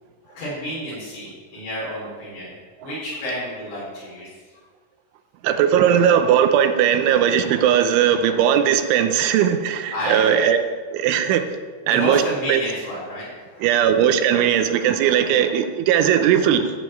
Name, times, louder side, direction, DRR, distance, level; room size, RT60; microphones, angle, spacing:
voice 1, 0.2-2.5 2.8-4.3 9.9-10.4 11.8-13.9, equal, 60° left, -8 dB, 6.7 m, -30 dB
voice 2, 5.4-10.6 10.9-11.4 11.9-12.2 12.5-12.6 13.6-16.7, right 9 dB, 80° right, 8 dB, 3.0 m, -18 dB
14.0 x 5.2 x 8.5 m, 1.5 s
omnidirectional pair, 5.8 m